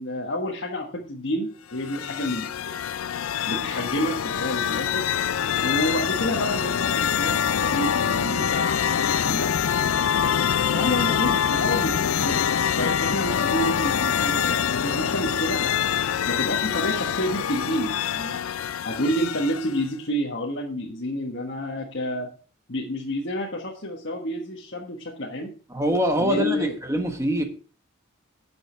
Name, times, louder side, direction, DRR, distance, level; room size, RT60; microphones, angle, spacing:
voice 1, 0.0-2.8 3.5-5.0 5.6-10.3 10.7-12.5 12.8-15.8 16.3-18.4 18.8-22.3 22.7-25.5 26.2-26.6, equal, 60° left, -2 dB, 1.6 m, -29 dB
sound 1, 1.7-19.9, left 8 dB, 85° left, 0.4 m, -25 dB
voice 2, 25.7-27.4, equal, 15° right, 5 dB, 1.4 m, -24 dB
11.0 x 6.5 x 4.5 m, 0.38 s
head